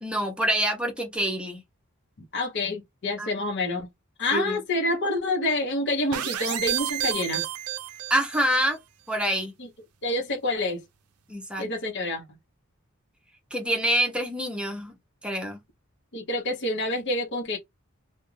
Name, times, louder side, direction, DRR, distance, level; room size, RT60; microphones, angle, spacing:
voice 1, 0.0-1.6 3.2-3.3 4.3-4.6 8.1-8.8 9.1-9.5 11.3-11.7 13.5-14.9 15.2-15.6, right 1 dB, 5° right, 0.7 m, -26 dB
voice 2, 2.3-3.9 4.2-7.5 9.6-9.7 10.0-10.8 11.6-12.2 16.1-17.6, left 2 dB, 55° left, 0.8 m, -27 dB
sound 1, 6.1-8.5, right 12 dB, 85° right, 0.4 m, -30 dB
2.4 x 2.2 x 3.0 m
head